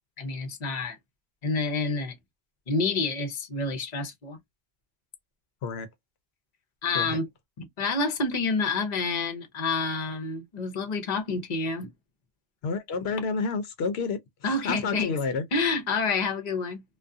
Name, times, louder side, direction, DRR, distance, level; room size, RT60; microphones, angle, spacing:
voice 1, 0.2-1.0 1.4-2.2 2.7-4.4 6.8-7.3 7.6-11.9 14.4-15.2 15.5-16.8, left 3 dB, 45° left, 0.8 m, -28 dB
voice 2, 12.6-14.2 14.6-15.4, left 4 dB, 80° left, 0.8 m, -29 dB
2.3 x 2.3 x 2.5 m
omnidirectional pair, 1.0 m